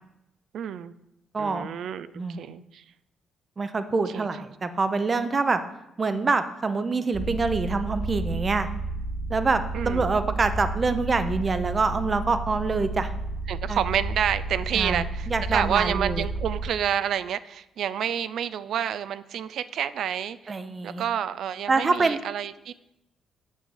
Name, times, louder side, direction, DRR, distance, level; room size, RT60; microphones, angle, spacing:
voice 1, 0.5-0.9 1.4-2.8 4.1-4.3 9.7-10.1 13.5-20.6 20.8-22.7, right 9 dB, 70° right, 15 dB, 0.3 m, -29 dB
voice 2, 1.3-1.7 2.1-2.4 3.6-5.6 6.0-8.7 9.3-13.1 13.7-13.8 14.7-16.2 20.5-21.0 21.7-22.2, right 4 dB, 35° right, 10 dB, 0.7 m, -25 dB
sound 1, 7.1-16.7, right 2 dB, 10° right, 1.2 m, -32 dB
6.2 x 5.5 x 7.1 m, 0.89 s
cardioid pair, 90°, 0 cm